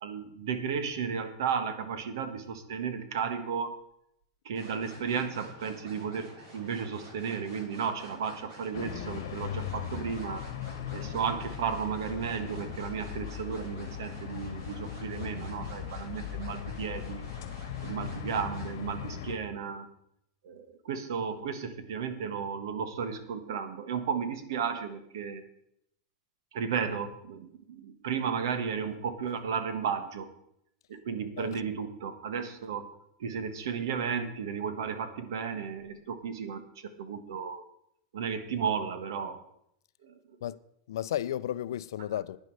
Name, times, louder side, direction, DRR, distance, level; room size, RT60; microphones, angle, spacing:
voice 1, 0.0-3.8 4.4-10.4 10.9-17.2 17.8-19.9 20.4-25.4 26.5-30.3 30.9-32.9 33.2-37.6 38.1-39.4 40.0-40.1, right 6 dB, 70° right, 1.5 m, -34 dB
sound 1, 4.5-18.7, right 1 dB, 45° right, 5.0 m, -51 dB
sound 2, 8.7-19.4, left 9 dB, 60° left, 1.6 m, -39 dB
voice 2, 40.9-42.4, left 11 dB, 90° left, 0.5 m, -33 dB
12.0 x 9.7 x 4.7 m
supercardioid pair, 180°, 2 cm